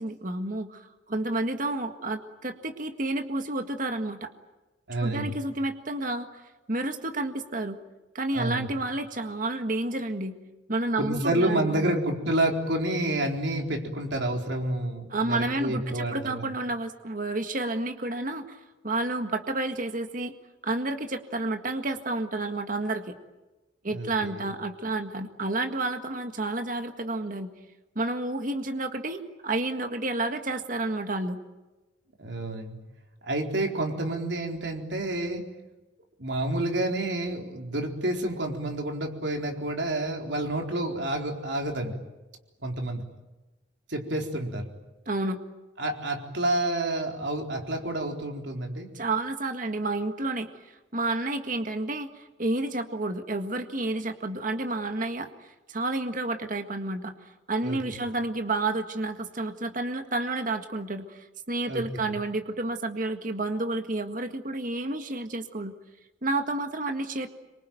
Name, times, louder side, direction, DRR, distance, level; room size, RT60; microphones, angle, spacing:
voice 1, 0.0-4.3 5.0-6.4 6.7-7.8 8.1-10.4 10.7-12.0 15.1-20.3 20.6-23.1 23.8-27.5 28.0-31.4 45.1-45.4 48.9-50.5 50.9-55.3 55.7-65.7 66.2-67.3, right 2 dB, 45° right, 6 dB, 1.7 m, -30 dB
voice 2, 4.9-5.4 8.3-8.7 11.0-16.5 23.9-24.5 32.2-32.8 33.2-35.4 36.2-41.9 42.6-43.1 43.9-44.7 45.8-48.9 57.6-58.0 61.7-61.8, right 1 dB, 65° right, 2 dB, 4.1 m, -29 dB
27.0 x 24.5 x 9.1 m, 1.1 s
head